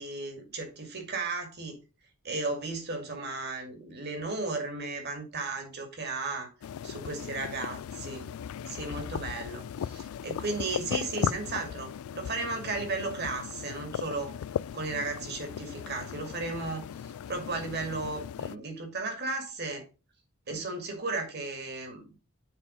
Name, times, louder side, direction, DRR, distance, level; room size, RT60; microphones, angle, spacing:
voice 1, 0.0-1.8 2.2-6.5 6.8-8.3 8.7-14.4 14.7-19.9 20.5-22.2, right 3 dB, 50° right, 2.3 m, -35 dB
sound 1, 6.6-18.6, left 8 dB, 80° left, 0.3 m, -37 dB
7.5 x 4.5 x 5.2 m
head